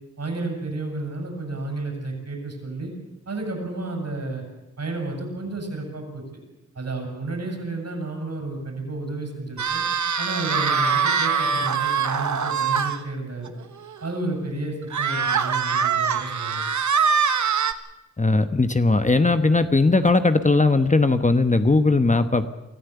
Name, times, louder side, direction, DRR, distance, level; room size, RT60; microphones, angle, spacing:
voice 1, 0.2-2.9 3.3-4.4 4.8-6.2 6.8-9.8 10.2-13.5 14.0-16.6, right 2 dB, 60° right, 3 dB, 7.3 m, -31 dB
sound 1, 9.6-13.0 13.5-13.6 13.9-14.0 14.9-17.7, right 6 dB, 75° right, 1.3 m, -23 dB
voice 2, 18.2-22.5, left 3 dB, 25° left, 9 dB, 1.1 m, -19 dB
24.5 x 14.5 x 8.2 m, 0.96 s
wide cardioid pair, 75°, 29 cm